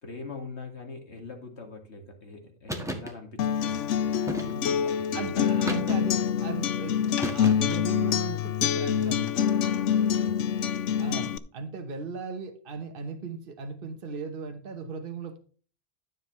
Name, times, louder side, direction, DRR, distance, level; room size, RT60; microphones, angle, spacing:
voice 1, 0.0-5.3 10.0-10.4, left 3 dB, 65° left, 3 dB, 2.4 m, -43 dB
sound 1, 2.7-3.1 4.3-4.8 5.7-6.3 7.2-7.9, equal, 5° right, 1.6 m, -34 dB
Acoustic guitar, 3.4-11.4, left 8 dB, 85° left, 1.0 m, -26 dB
voice 2, 5.1-7.0 7.3-9.4 11.0-15.4, right 5 dB, 50° right, 6 dB, 1.3 m, -37 dB
13.0 x 7.6 x 3.2 m, 0.41 s
omnidirectional pair, 1.2 m